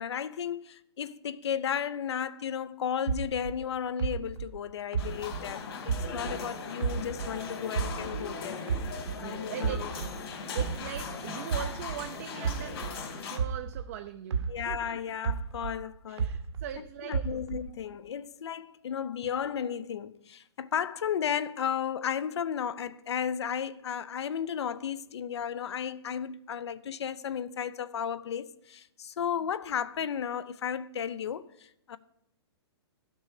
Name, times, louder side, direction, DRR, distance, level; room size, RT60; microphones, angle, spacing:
voice 1, 0.0-8.6 9.2-9.9 14.5-16.3 16.8-32.0, left 8 dB, 75° left, 0.6 m, -34 dB
sound 1, 3.1-6.5 6.8-9.3 9.6-14.0 14.3-16.8 17.1-17.8, right 6 dB, 75° right, 0.8 m, -33 dB
sound 2, 5.0-13.4, left 4 dB, 60° left, 2.2 m, -39 dB
voice 2, 9.2-10.0 10.3-15.0 16.1-17.4, right 11 dB, 35° right, 0.4 m, -41 dB
12.0 x 6.3 x 4.8 m
hypercardioid pair, 155°, 14 cm